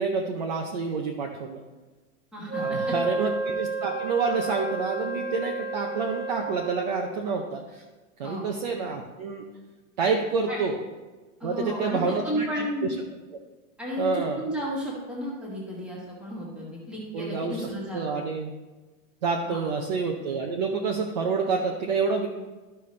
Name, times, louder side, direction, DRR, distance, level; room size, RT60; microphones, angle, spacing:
voice 1, 0.0-1.6 2.6-7.8 8.2-9.4 10.0-10.8 11.4-12.7 14.0-14.5 17.1-18.5 19.2-22.3, right 4 dB, 35° right, 1 dB, 0.6 m, -28 dB
voice 2, 2.3-2.8 8.2-8.4 10.5-10.6 11.4-12.9 13.8-18.2 19.5-19.8, equal, 5° right, -5 dB, 1.4 m, -33 dB
Wind instrument woodwind instrument, 2.5-7.1, right 3 dB, 20° left, 0.4 m, -31 dB
12.5 x 5.5 x 3.2 m, 1.2 s
supercardioid pair, 170°, 41 cm